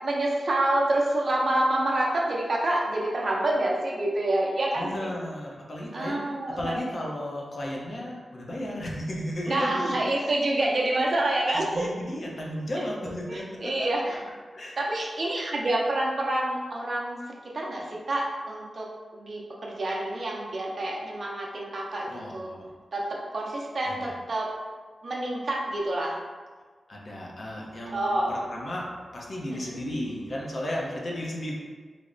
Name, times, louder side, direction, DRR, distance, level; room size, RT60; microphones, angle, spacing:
voice 1, 0.0-5.1 5.9-6.8 9.5-11.9 13.3-14.2 14.8-17.2 17.4-18.9 19.1-22.5 22.9-24.5 25.0-26.2 27.9-28.4 29.5-29.8, right 1 dB, 50° right, -2 dB, 0.6 m, -27 dB
voice 2, 4.8-6.2 6.5-10.3 11.5-13.9 14.5-14.8 22.1-22.7 23.8-24.1 26.9-31.6, left 1 dB, 50° left, -3 dB, 0.6 m, -34 dB
3.3 x 2.0 x 3.8 m, 1.5 s
wide cardioid pair, 120°, 0 cm